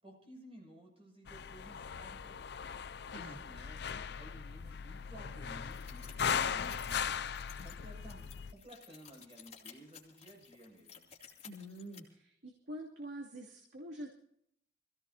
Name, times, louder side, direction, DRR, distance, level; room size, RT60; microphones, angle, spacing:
voice 1, 0.0-2.5 3.1-7.3 7.6-11.1, right 1 dB, 35° right, -1 dB, 6.6 m, -55 dB
sound 1, 1.3-8.5, left 7 dB, 65° left, 0.5 m, -38 dB
sound 2, 5.7-12.0, left 7 dB, 40° left, 2.8 m, -55 dB
voice 2, 11.4-14.1, equal, 80° right, -2 dB, 2.6 m, -46 dB
26.0 x 16.0 x 2.8 m, 0.72 s
head